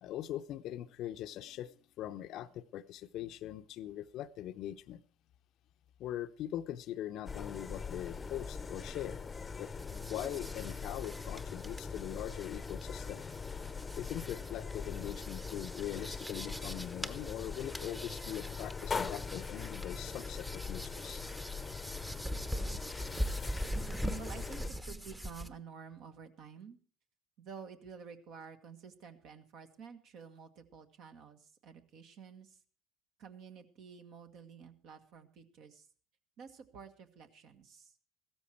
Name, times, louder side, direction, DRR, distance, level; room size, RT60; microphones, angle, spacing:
voice 1, 0.0-5.0 6.0-9.2 9.6-13.2 14.0-21.2, left 12 dB, 55° left, 11 dB, 0.7 m, -42 dB
sound 1, 7.3-24.7, left 5 dB, 25° left, 0.8 m, -42 dB
sound 2, 9.8-25.5, equal, 10° right, 1.0 m, -43 dB
voice 2, 24.2-26.8 27.4-32.6 33.2-35.9 36.4-37.9, right 6 dB, 55° right, 6 dB, 1.6 m, -51 dB
15.0 x 13.5 x 4.5 m, 0.39 s
hypercardioid pair, 70°, 0 cm